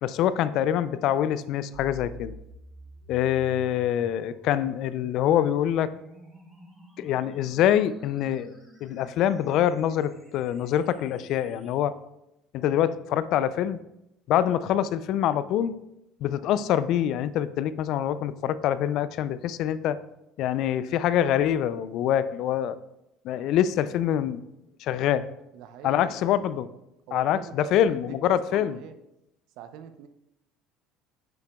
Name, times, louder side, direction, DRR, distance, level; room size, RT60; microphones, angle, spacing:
voice 1, 0.0-2.3 3.1-5.9 7.0-8.6 8.8-11.9 12.5-13.8 14.3-15.7 16.2-20.0 20.4-22.8 23.2-24.4 24.8-25.2 25.8-26.7 27.1-28.8, left 10 dB, 60° left, 15 dB, 0.3 m, -25 dB
sound 1, 1.7-11.7, left 1 dB, 10° right, 2.6 m, -49 dB
voice 2, 25.5-26.4 27.1-29.0 29.6-30.1, right 9 dB, 70° right, 10 dB, 0.6 m, -43 dB
9.1 x 5.7 x 2.3 m, 0.87 s
supercardioid pair, 85°, 0 cm